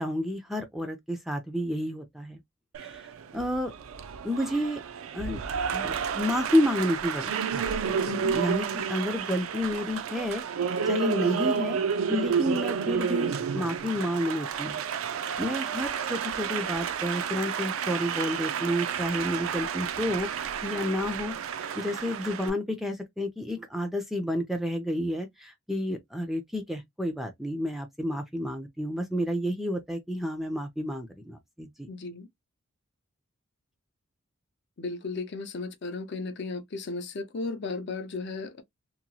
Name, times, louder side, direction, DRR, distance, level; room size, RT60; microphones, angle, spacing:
voice 1, 0.0-2.4 2.8-3.0 3.3-3.7 4.2-4.8 5.1-5.4 5.7-7.8 8.3-10.4 10.9-11.8 12.1-14.8 15.4-21.3 21.8-31.9, left 1 dB, ahead, 0.4 m, -30 dB
Applause, 2.7-22.5, right 7 dB, 65° right, 0.4 m, -31 dB
voice 2, 8.0-8.4 31.9-32.3 34.8-38.6, left 3 dB, 50° left, 0.5 m, -35 dB
2.8 x 2.2 x 2.7 m
head